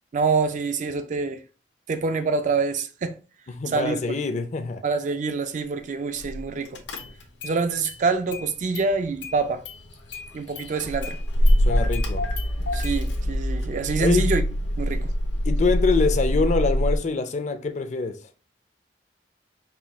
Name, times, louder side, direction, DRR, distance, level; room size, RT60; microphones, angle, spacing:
voice 1, 0.1-1.4 1.9-3.2 3.7-4.0 4.8-6.8 7.4-9.6 10.3-11.2 12.7-14.4 14.8-15.1, right 4 dB, 45° right, 0.4 m, -26 dB
voice 2, 3.5-4.8 11.6-12.2 14.0-14.3 15.4-18.2, left 4 dB, 40° left, 0.4 m, -25 dB
Car / Engine starting, 6.2-6.4 6.7-7.6 7.8-8.9 9.2-17.0, equal, 85° left, 0.8 m, -24 dB
4.3 x 2.3 x 3.4 m
head